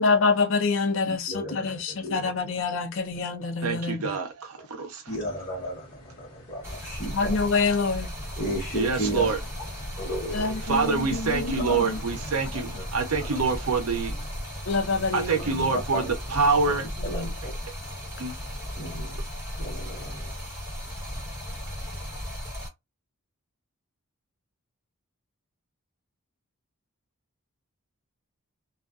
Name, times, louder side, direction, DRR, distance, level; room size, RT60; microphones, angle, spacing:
voice 1, 0.0-4.2 7.1-8.1 10.3-12.0 14.7-15.7 17.0-17.3, left 4 dB, 60° left, 0.5 m, -26 dB
voice 2, 1.0-2.3 5.1-7.4 8.4-9.3 10.0-10.5 10.8-10.9 11.5-11.8 12.7-12.8 13.2-13.5 15.4-15.5 15.9-16.4 17.0-17.5 18.8-19.2 19.6-20.3, equal, 35° left, 0.9 m, -34 dB
voice 3, 3.6-5.0 8.7-9.4 10.7-14.1 15.1-16.9 18.2-18.3, right 4 dB, 80° right, 0.6 m, -26 dB
sound 1, 5.1-16.4, left 1 dB, 80° left, 0.8 m, -48 dB
Stream, 6.6-22.7, equal, 10° right, 1.1 m, -36 dB
2.4 x 2.3 x 2.4 m
head